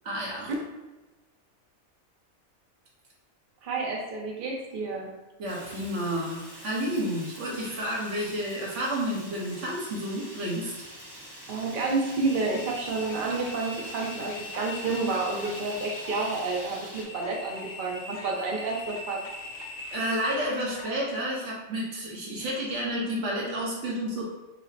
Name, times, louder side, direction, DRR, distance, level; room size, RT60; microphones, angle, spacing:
voice 1, 0.0-0.5 5.4-10.7 19.9-24.2, equal, 65° right, -4 dB, 1.2 m, -30 dB
voice 2, 3.6-5.1 11.5-19.3, right 3 dB, 50° right, -1 dB, 0.7 m, -30 dB
Fire, 5.5-17.0, equal, 15° right, 0.7 m, -45 dB
sound 1, 12.2-20.9, left 2 dB, 60° left, 0.6 m, -41 dB
4.9 x 2.0 x 2.7 m, 1.1 s
omnidirectional pair, 1.4 m